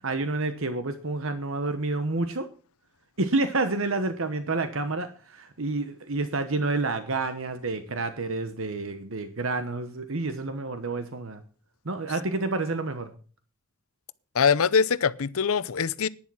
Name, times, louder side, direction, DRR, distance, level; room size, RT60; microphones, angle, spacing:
voice 1, 0.0-2.5 3.2-11.4 11.8-13.1, right 3 dB, 65° right, 1.1 m, -29 dB
voice 2, 14.3-16.1, left 6 dB, 80° left, 0.6 m, -23 dB
11.0 x 10.0 x 6.2 m
head